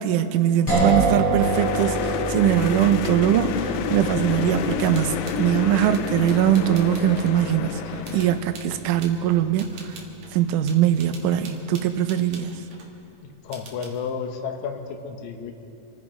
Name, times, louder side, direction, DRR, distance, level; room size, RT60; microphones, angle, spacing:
voice 1, 0.0-9.7 10.3-12.6, right 11 dB, 75° right, 8 dB, 2.2 m, -21 dB
sound 1, 0.7-10.4, right 3 dB, 40° left, 5.9 m, -29 dB
sound 2, 1.4-8.8 9.2-9.3, left 9 dB, 85° left, 2.4 m, -29 dB
sound 3, 4.8-7.4 8.0-9.2 9.6-12.9 13.5-14.1, right 4 dB, 60° right, 2.8 m, -45 dB
voice 2, 13.4-15.5, left 6 dB, 65° left, 4 dB, 2.3 m, -31 dB
26.0 x 11.0 x 5.0 m, 2.8 s
omnidirectional pair, 3.9 m